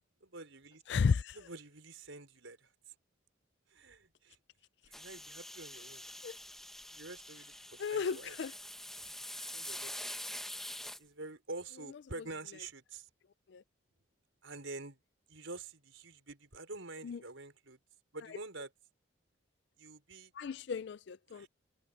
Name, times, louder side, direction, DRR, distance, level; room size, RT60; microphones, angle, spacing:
voice 1, 0.2-0.8 1.3-2.9 3.7-4.4 4.8-6.1 6.9-8.4 9.5-10.0 11.0-13.1 14.4-15.0 15.3-17.8 18.1-18.7 19.8-20.3 21.3-21.5, right 3 dB, 75° right, 5.0 m, -47 dB
voice 2, 0.9-1.4 6.2-6.3 7.8-8.5 13.5-13.6 17.0-17.2 20.4-21.5, left 5 dB, 60° left, 0.4 m, -33 dB
sound 1, 4.9-11.0, left 1 dB, ahead, 0.9 m, -45 dB
head